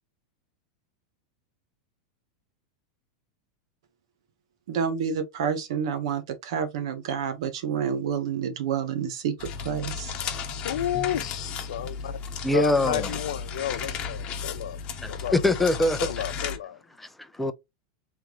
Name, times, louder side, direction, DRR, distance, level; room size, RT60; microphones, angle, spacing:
voice 1, 4.7-10.1, right 7 dB, 70° right, 1.1 m, -29 dB
sound 1, 9.4-16.6, left 6 dB, 35° left, 0.9 m, -34 dB
voice 2, 10.5-12.1 12.5-14.8 15.1-15.3 16.0-16.8, left 12 dB, 80° left, 0.5 m, -31 dB
voice 3, 12.4-13.2 15.0-16.1 17.0-17.5, left 1 dB, 5° left, 0.5 m, -24 dB
3.5 x 3.2 x 3.1 m
supercardioid pair, 125°, 3 cm